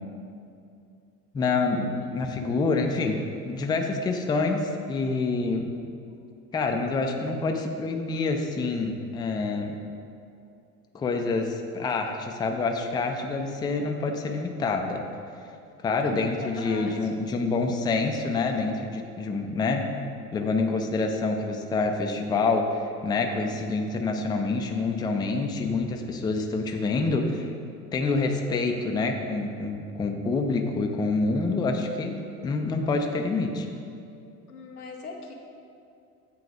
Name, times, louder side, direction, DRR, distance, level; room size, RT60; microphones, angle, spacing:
voice 1, 1.3-5.7 6.5-9.8 10.9-15.0 15.8-19.9 20.3-27.5 27.9-33.7, left 3 dB, 10° left, 3 dB, 0.4 m, -27 dB
voice 2, 15.8-17.1 34.5-35.3, left 4 dB, 90° left, 0 dB, 0.8 m, -40 dB
8.2 x 3.8 x 4.8 m, 2.6 s
figure-of-eight pair, 65°, 44 cm